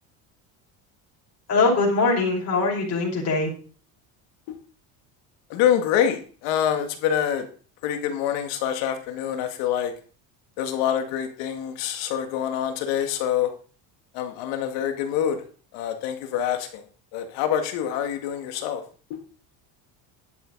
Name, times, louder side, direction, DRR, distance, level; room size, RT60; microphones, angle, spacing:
voice 1, 1.5-3.5, left 3 dB, 35° left, -3 dB, 5.3 m, -22 dB
voice 2, 5.5-7.5 7.8-9.9 10.6-13.5 14.1-15.4 15.7-16.8 17.1-18.8, left 9 dB, 85° left, 6 dB, 2.2 m, -26 dB
11.5 x 8.7 x 4.0 m, 0.39 s
cardioid pair, 110°, 43 cm